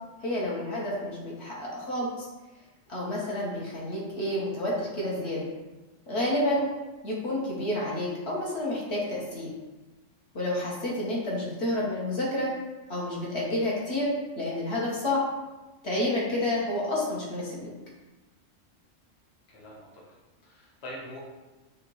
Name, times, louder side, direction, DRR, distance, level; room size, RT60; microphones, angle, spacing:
voice 1, 0.2-2.3 2.9-5.5 6.1-6.7 7.0-9.5 10.3-12.5 12.9-14.1 14.3-15.2 15.8-17.7, left 1 dB, 60° left, -5 dB, 1.4 m, -29 dB
voice 2, 19.5-20.0 20.4-21.2, left 1 dB, 35° left, -5 dB, 1.0 m, -43 dB
5.6 x 2.9 x 3.0 m, 1.1 s
omnidirectional pair, 1.3 m